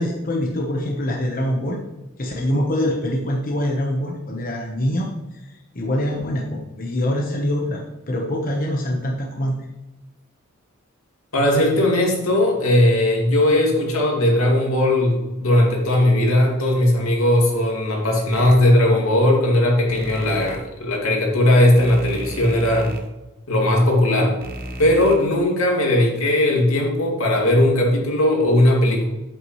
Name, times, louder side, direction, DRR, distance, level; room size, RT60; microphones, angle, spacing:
voice 1, 0.0-1.8 2.2-5.4 5.7-9.5, left 1 dB, 40° left, -1 dB, 1.1 m, -24 dB
voice 2, 11.3-22.9 23.5-24.4 24.8-29.0, left 1 dB, 85° left, -1 dB, 2.3 m, -18 dB
sound 1, 18.3-18.6 19.9-20.6 21.8-23.0 24.4-25.2, right 1 dB, 45° right, 1.1 m, -34 dB
8.3 x 8.0 x 3.1 m, 1.0 s
head